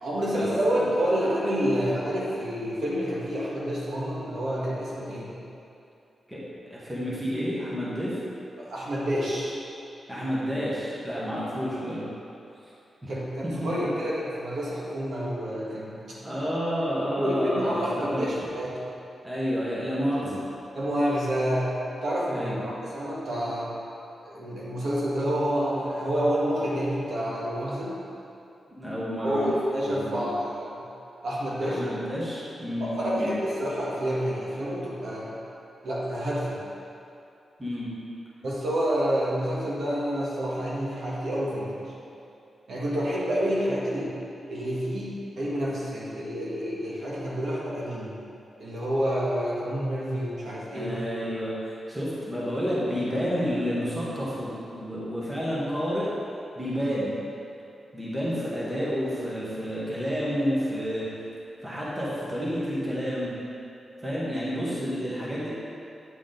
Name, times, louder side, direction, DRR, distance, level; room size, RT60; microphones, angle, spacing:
voice 1, 0.0-5.4 8.6-9.6 13.1-16.2 17.2-18.8 20.7-21.7 22.0-23.7 24.2-27.9 29.2-30.8 31.2-31.8 32.8-35.3 35.8-36.6 38.4-41.8 42.7-44.1 44.5-48.2 48.6-51.0, equal, 65° right, -6 dB, 1.5 m, -28 dB
voice 2, 6.7-8.2 10.1-12.1 13.0-13.1 13.6-13.7 16.2-18.3 19.2-20.4 22.3-22.6 28.7-29.5 29.8-30.3 31.6-33.4 37.6-37.9 50.7-56.1 56.6-57.2 57.9-61.1 61.6-63.3 64.0-65.5, equal, 10° right, -8 dB, 1.3 m, -30 dB
8.8 x 4.8 x 3.9 m, 2.7 s
wide cardioid pair, 170°, 0 cm